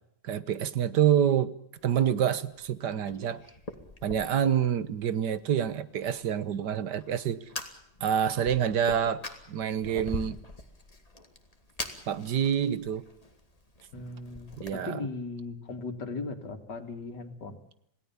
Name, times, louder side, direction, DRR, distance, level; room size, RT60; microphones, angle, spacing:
voice 1, 0.2-1.5 1.8-3.4 4.0-7.4 8.0-9.2 9.5-10.4 12.1-13.0 14.6-15.0, right 9 dB, 80° right, 1.7 m, -27 dB
Fire, 1.8-14.7, left 1 dB, 20° left, 2.3 m, -44 dB
voice 2, 13.9-17.6, left 3 dB, 85° left, 2.8 m, -38 dB
27.5 x 17.5 x 7.1 m
omnidirectional pair, 1.8 m